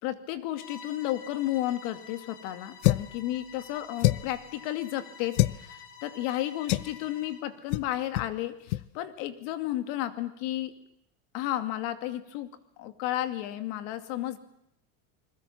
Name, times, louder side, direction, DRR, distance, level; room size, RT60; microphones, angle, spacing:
voice 1, 0.0-10.7 11.3-12.5 12.8-14.4, left 14 dB, 60° left, 9 dB, 2.5 m, -33 dB
Bowed string instrument, 0.5-7.5, left 5 dB, 30° left, 2.5 m, -49 dB
sound 1, 2.8-3.2 4.0-4.4 5.3-5.6 6.7-6.9 7.7-7.9 8.1-8.3 8.7-8.8, left 17 dB, 90° left, 0.9 m, -25 dB
29.0 x 21.5 x 7.4 m, 0.76 s
supercardioid pair, 160°, 42 cm